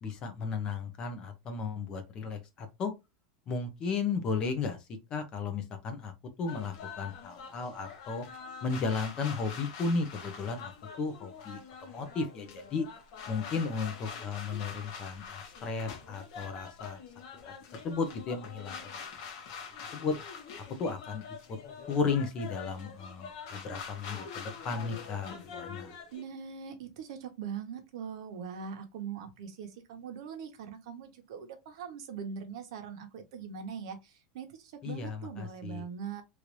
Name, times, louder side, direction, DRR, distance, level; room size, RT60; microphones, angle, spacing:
voice 1, 0.0-2.9 3.5-6.1 6.4-8.2 8.6-10.7 11.0-12.9 13.3-17.0 17.4-18.8 19.9-20.1 20.8-21.2 21.5-21.6 21.9-25.9 34.8-35.8, left 4 dB, 25° left, 0.6 m, -34 dB
sound 1, 6.5-26.2, left 6 dB, 50° left, 0.9 m, -45 dB
voice 2, 26.1-36.2, right 7 dB, 60° right, 0.9 m, -42 dB
3.1 x 2.5 x 3.1 m
supercardioid pair, 170°, 3 cm